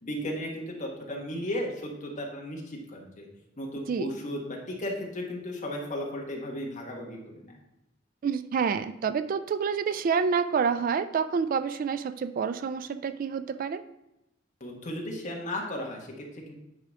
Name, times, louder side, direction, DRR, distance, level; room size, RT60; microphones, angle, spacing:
voice 1, 0.0-3.3 3.6-7.6 14.6-16.6, left 1 dB, 40° left, -1 dB, 1.5 m, -35 dB
voice 2, 8.2-13.8, right 6 dB, 45° right, 12 dB, 0.3 m, -28 dB
8.9 x 4.9 x 3.6 m, 0.89 s
head